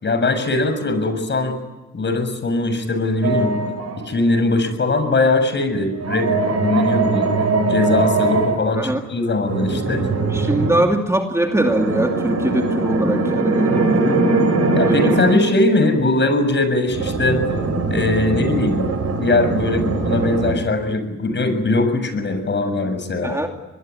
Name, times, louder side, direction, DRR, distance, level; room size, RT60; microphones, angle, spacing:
voice 1, 0.0-1.6 1.9-3.5 4.1-6.3 6.6-7.3 7.7-10.1 14.7-17.4 17.9-18.8 19.2-23.4, left 2 dB, 35° left, 9 dB, 7.0 m, -20 dB
sound 1, 3.2-4.1 5.9-8.6 9.4-10.8 11.4-15.5 16.9-20.5, right 3 dB, 55° right, 7.5 m, -21 dB
voice 2, 10.3-14.2 14.8-15.3 23.2-23.5, right 1 dB, 10° right, 3 dB, 2.5 m, -21 dB
24.5 x 21.5 x 9.8 m, 1.1 s
cardioid pair, 90°, 30 cm